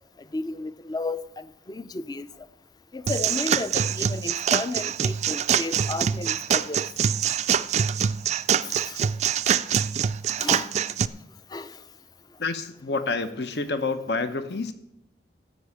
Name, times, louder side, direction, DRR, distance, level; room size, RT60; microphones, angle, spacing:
voice 1, 0.3-2.3 2.9-6.8 8.7-9.0 10.4-10.7 11.5-11.7, left 3 dB, 25° left, 0.4 m, -33 dB
sound 1, 3.1-11.1, right 8 dB, 40° right, 0.3 m, -24 dB
voice 2, 12.4-14.7, left 3 dB, 70° left, 0.8 m, -28 dB
13.5 x 5.5 x 8.3 m
head